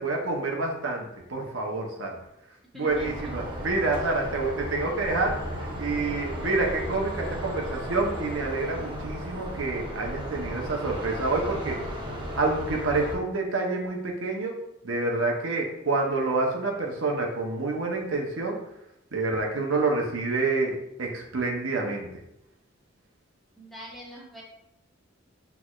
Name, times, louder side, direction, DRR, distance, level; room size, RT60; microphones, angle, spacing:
voice 1, 0.0-2.1 2.7-11.8 12.4-14.5 14.8-18.6 19.1-22.1, right 3 dB, 70° right, 0 dB, 0.8 m, -28 dB
voice 2, 2.7-3.3 23.6-24.4, equal, ahead, -6 dB, 1.2 m, -43 dB
sound 1, 2.9-13.2, equal, 25° right, 0.9 m, -35 dB
6.1 x 3.4 x 2.4 m, 0.81 s
head